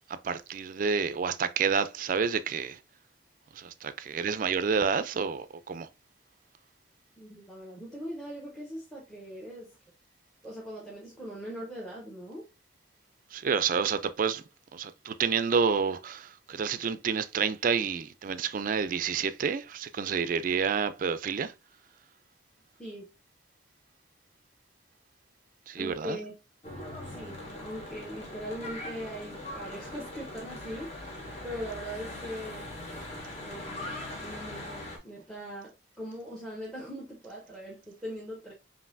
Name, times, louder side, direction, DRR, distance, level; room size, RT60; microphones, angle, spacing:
voice 1, 0.1-2.8 3.6-5.9 13.3-14.4 14.7-21.5 25.7-26.2, right 6 dB, 45° right, 0.3 m, -29 dB
voice 2, 7.2-9.8 10.4-12.5 22.8-23.1 25.7-26.3 27.1-32.8 33.4-38.5, equal, 5° left, 0.7 m, -41 dB
Church bell / Traffic noise roadway noise, 26.6-35.0, left 1 dB, 35° left, 1.0 m, -41 dB
5.3 x 2.6 x 2.5 m
head